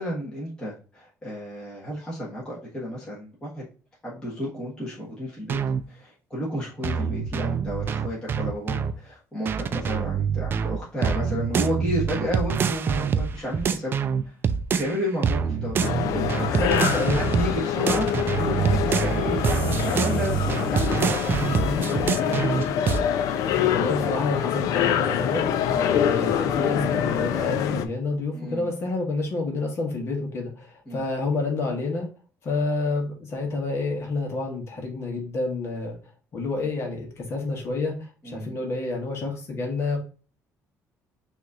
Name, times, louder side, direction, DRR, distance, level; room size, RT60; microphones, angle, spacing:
voice 1, 0.0-3.6 4.0-5.6 5.9-13.9 14.7-16.2 16.5-22.7 25.7-26.0 28.3-28.7 30.9-31.0 38.2-38.5, equal, 15° left, -6 dB, 1.5 m, -32 dB
sound 1, 5.5-5.8 6.8-8.9 9.5-15.0 15.2-17.6 17.9-23.0, right 6 dB, 40° right, 0.4 m, -25 dB
sound 2, 15.8-27.9, left 9 dB, 80° left, 0.5 m, -25 dB
voice 2, 23.7-25.5 25.8-32.1 32.4-36.0 36.3-40.0, left 3 dB, 45° left, 1 dB, 1.4 m, -29 dB
6.0 x 2.9 x 2.5 m, 0.36 s
cardioid pair, 130°, 6 cm